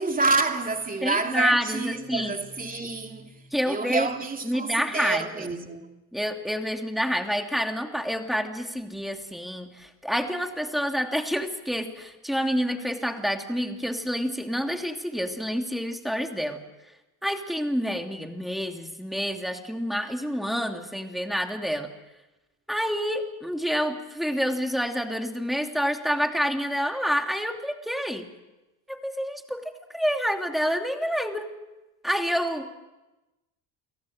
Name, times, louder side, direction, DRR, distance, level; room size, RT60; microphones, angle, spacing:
voice 1, 0.0-5.9 32.6-32.7, right 3 dB, 20° right, 2.9 m, -28 dB
voice 2, 1.0-2.3 3.5-4.1 4.4-5.5 6.1-16.6 17.2-21.9 22.7-28.3 28.9-31.5 32.0-32.7, equal, ahead, 2.7 m, -28 dB
29.5 x 18.0 x 6.6 m
supercardioid pair, 90°, 41 cm